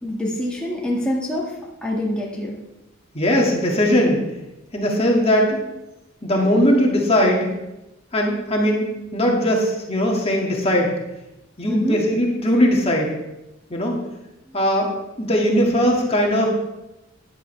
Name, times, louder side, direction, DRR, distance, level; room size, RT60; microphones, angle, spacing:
voice 1, 0.0-2.6 11.7-12.0 14.5-14.6, left 1 dB, 5° left, -5 dB, 1.8 m, -25 dB
voice 2, 3.1-4.2 4.7-5.6 6.2-7.5 8.1-11.0 11.6-13.1 13.7-14.0 14.5-14.9 15.2-16.5, equal, 30° left, -1 dB, 2.0 m, -19 dB
14.5 x 10.5 x 3.3 m, 0.97 s
head